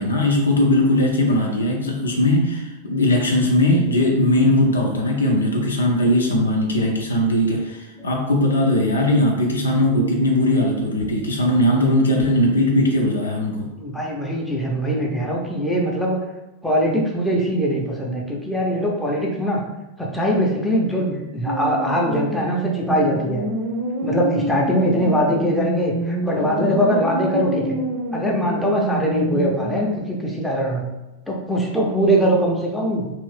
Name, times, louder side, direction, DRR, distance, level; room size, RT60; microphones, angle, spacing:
voice 1, 0.0-13.7, left 1 dB, 75° left, 0 dB, 0.5 m, -19 dB
voice 2, 13.8-16.2 16.6-19.6 20.0-23.5 24.0-27.8 28.1-30.9 31.3-33.1, equal, 5° left, -3 dB, 0.7 m, -22 dB
sound 1, 21.4-29.9, right 1 dB, 50° right, 0.7 m, -27 dB
2.7 x 2.5 x 3.3 m, 1.0 s
figure-of-eight pair, 90°, 0 cm